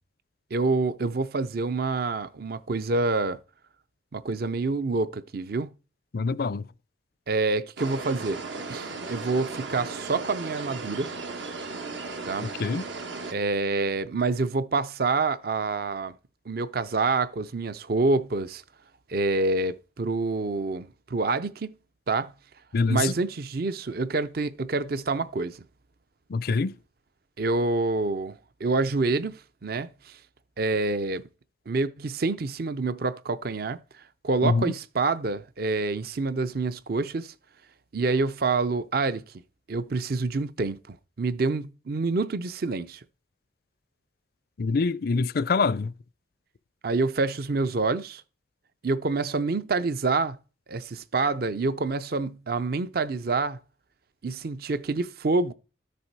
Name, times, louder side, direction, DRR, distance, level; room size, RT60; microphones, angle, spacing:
voice 1, 0.5-3.4 4.1-5.7 7.3-8.4 8.7-11.1 12.3-12.5 13.3-16.1 16.5-18.6 19.1-21.7 22.1-22.3 22.9-25.6 27.4-30.2 30.6-31.2 31.7-33.8 34.2-37.3 37.9-39.2 39.7-43.0 46.8-48.2 48.8-50.4 50.7-53.6 54.2-55.5, right 3 dB, 50° right, 0.6 m, -27 dB
voice 2, 6.1-6.6 12.6-12.9 22.7-23.1 26.3-26.8 34.4-34.6 44.6-45.9, left 4 dB, 50° left, 0.4 m, -25 dB
sound 1, 7.8-13.3, right 3 dB, 75° right, 1.3 m, -36 dB
13.5 x 6.9 x 4.7 m
head